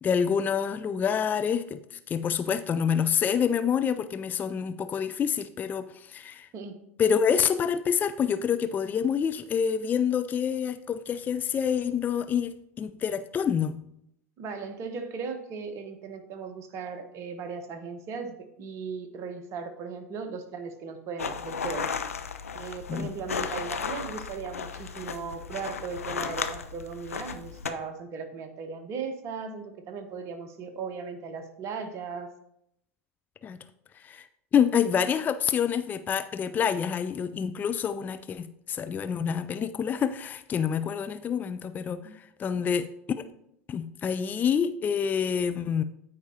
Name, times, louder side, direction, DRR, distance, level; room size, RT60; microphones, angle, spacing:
voice 1, 0.0-6.5 7.0-13.8 22.9-23.1 33.4-33.6 34.0-42.9 43.2-43.3 43.7-45.8, left 7 dB, 25° left, 11 dB, 0.4 m, -27 dB
voice 2, 14.4-21.9 22.5-32.3 42.0-42.1, right 5 dB, 40° right, 7 dB, 1.1 m, -37 dB
sound 1, 21.2-27.7, left 6 dB, 80° left, 0.5 m, -35 dB
13.5 x 4.7 x 2.8 m, 0.77 s
figure-of-eight pair, 80°, 8 cm